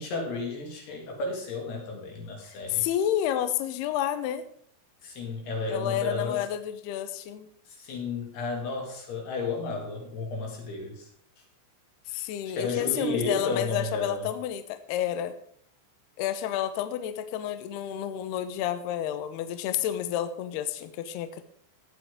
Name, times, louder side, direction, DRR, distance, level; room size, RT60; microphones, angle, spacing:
voice 1, 0.0-2.9 5.0-6.4 7.7-11.1 12.5-14.3, left 3 dB, 60° left, 1 dB, 3.7 m, -33 dB
voice 2, 2.4-4.4 5.7-7.5 12.1-15.3 16.2-21.4, left 11 dB, 85° left, 10 dB, 2.3 m, -30 dB
16.5 x 9.6 x 3.6 m, 0.62 s
omnidirectional pair, 6.0 m